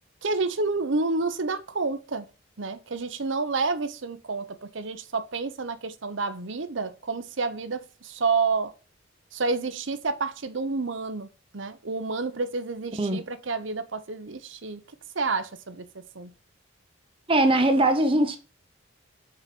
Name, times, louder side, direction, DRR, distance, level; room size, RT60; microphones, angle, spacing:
voice 1, 0.2-2.3 2.6-8.7 9.3-11.3 11.5-14.8 15.1-16.3, right 4 dB, 65° right, 0.8 m, -29 dB
voice 2, 17.3-18.4, right 1 dB, 25° right, 0.8 m, -21 dB
6.7 x 4.8 x 5.3 m
head